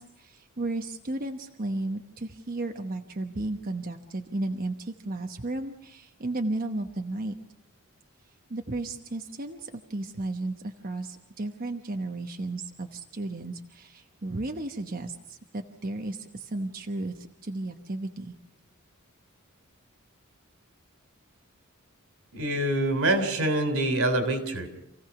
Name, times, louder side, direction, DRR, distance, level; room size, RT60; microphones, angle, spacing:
voice 1, 0.0-7.3 8.5-18.3, right 2 dB, 45° right, 4 dB, 1.1 m, -34 dB
voice 2, 22.3-24.7, right 1 dB, 85° right, 7 dB, 3.5 m, -25 dB
28.0 x 16.5 x 5.9 m, 0.82 s
head